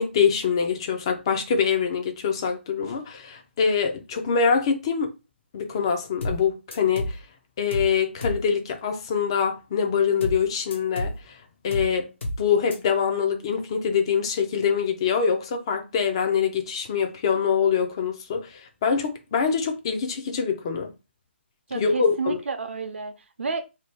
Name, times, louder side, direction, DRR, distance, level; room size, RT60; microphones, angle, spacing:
voice 1, 0.0-5.1 5.5-7.2 7.6-11.4 11.6-12.1 12.4-20.9 21.7-22.4, left 6 dB, 25° left, 0.4 m, -24 dB
sound 1, 6.2-6.4 6.7-7.2 7.7-7.9 8.2-8.4 10.2-10.4 10.7-11.2 11.7-11.9 12.2-12.4 12.7-12.8, left 1 dB, 70° left, 1.0 m, -30 dB
voice 2, 21.7-23.6, right 4 dB, 70° right, 0.6 m, -30 dB
2.7 x 2.2 x 3.3 m
hypercardioid pair, 165°, 7 cm